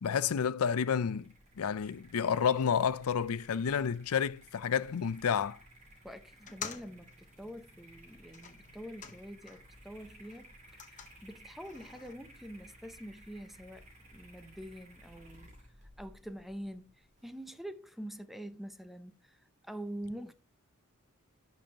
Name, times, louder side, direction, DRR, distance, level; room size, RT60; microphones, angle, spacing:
voice 1, 0.0-5.6, left 7 dB, 75° left, 0.5 m, -30 dB
sound 1, 1.0-17.3, right 1 dB, 30° right, 2.6 m, -57 dB
voice 2, 6.0-13.9 14.1-15.5 16.0-20.3, equal, ahead, 0.6 m, -46 dB
sound 2, 6.4-9.8 10.1-12.1, left 7 dB, 35° left, 1.1 m, -49 dB
12.0 x 5.3 x 2.9 m
head